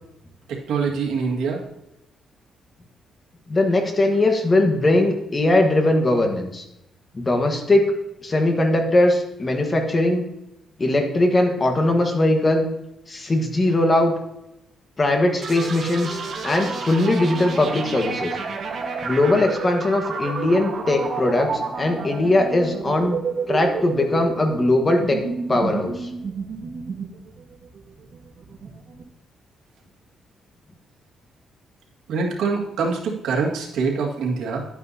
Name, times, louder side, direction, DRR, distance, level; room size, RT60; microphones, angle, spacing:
voice 1, 0.5-1.6 32.1-34.7, right 4 dB, 85° right, 0 dB, 1.9 m, -24 dB
voice 2, 3.5-6.6 7.1-7.9 8.2-10.2 10.8-12.7 13.1-14.1 15.0-16.2 16.4-18.4 19.0-23.2 23.5-25.2 25.5-26.1, left 2 dB, 25° left, 3 dB, 1.4 m, -20 dB
sound 1, 15.4-29.0, right 5 dB, 45° right, 1.4 m, -30 dB
11.0 x 9.2 x 2.8 m, 0.86 s
cardioid pair, 135°, 0 cm